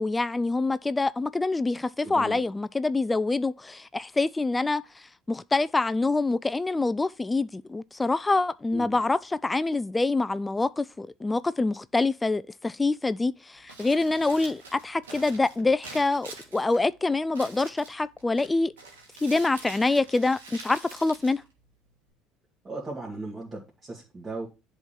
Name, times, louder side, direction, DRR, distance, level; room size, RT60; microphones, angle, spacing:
voice 1, 0.0-18.7 19.2-21.4, left 3 dB, 15° left, 0.3 m, -26 dB
voice 2, 2.0-2.4 8.7-9.0 22.6-24.5, right 3 dB, 25° right, 2.3 m, -37 dB
Crumpling crinkling, 13.6-22.1, right 3 dB, 80° right, 1.6 m, -46 dB
10.5 x 3.7 x 4.3 m
figure-of-eight pair, 65°, 0 cm